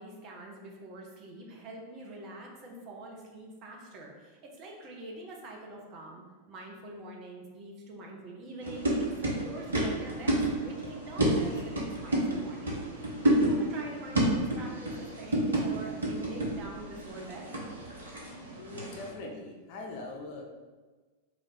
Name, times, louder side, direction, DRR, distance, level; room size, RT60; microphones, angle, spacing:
voice 1, 0.0-17.5, right 1 dB, 35° right, -1 dB, 0.7 m, -45 dB
sound 1, 8.6-19.1, right 1 dB, 75° right, 0.8 m, -30 dB
voice 2, 18.6-20.4, left 2 dB, 45° left, 2 dB, 0.6 m, -41 dB
3.3 x 2.5 x 4.0 m, 1.3 s
figure-of-eight pair, 90°, 0 cm